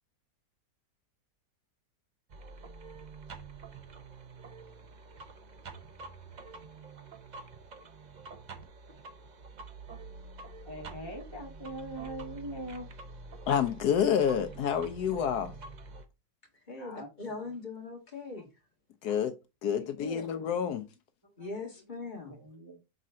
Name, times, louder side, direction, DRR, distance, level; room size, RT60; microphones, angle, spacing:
sound 1, 2.3-16.0, right 4 dB, 45° right, 0.5 m, -47 dB
voice 1, 10.6-12.9 16.8-17.4 21.2-21.8 22.2-22.8, right 1 dB, 15° right, 1.1 m, -43 dB
voice 2, 13.5-15.5 19.0-19.3 19.6-20.8, left 8 dB, 75° left, 1.2 m, -28 dB
voice 3, 16.7-18.5 19.1-19.2 19.8-20.3 21.4-22.4, left 3 dB, 30° left, 1.9 m, -41 dB
6.5 x 4.2 x 3.7 m
omnidirectional pair, 1.8 m